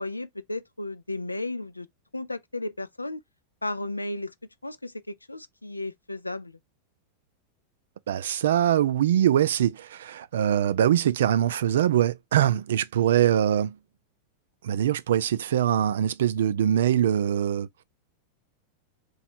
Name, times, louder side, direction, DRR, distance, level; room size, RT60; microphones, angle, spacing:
voice 1, 0.0-1.9 2.1-3.2 3.6-4.3 4.6-6.6, left 2 dB, 85° left, 0.3 m, -34 dB
voice 2, 8.1-13.7 14.6-17.7, right 10 dB, 60° right, 0.3 m, -23 dB
3.1 x 2.3 x 4.1 m
figure-of-eight pair, 90°, 0 cm